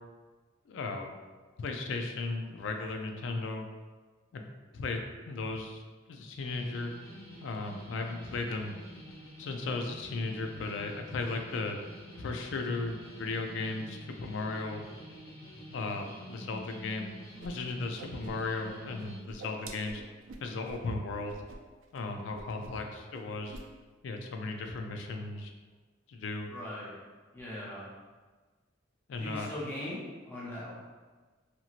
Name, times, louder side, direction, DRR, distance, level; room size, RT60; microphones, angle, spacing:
voice 1, 0.7-1.1 1.6-3.6 4.3-4.4 4.7-5.8 6.1-6.9 7.4-8.7 9.4-11.8 12.2-14.9 15.7-17.1 17.4-20.0 20.4-21.4 21.9-23.6 24.0-25.5 26.1-26.5 29.1-29.5, left 3 dB, 65° left, 4 dB, 0.3 m, -36 dB
sound 1, 6.4-19.2, equal, 85° left, 0.8 m, -48 dB
Whoosh swoosh swish, 17.4-17.5 17.8-18.7 19.0-20.9 21.3-21.6 21.8-22.0 22.3-22.9 23.1-23.7, right 2 dB, 85° right, 0.3 m, -46 dB
voice 2, 26.5-26.9 27.3-27.9 29.2-30.0 30.3-30.8, left 1 dB, 10° left, -8 dB, 0.5 m, -40 dB
2.9 x 2.7 x 2.4 m, 1.4 s
head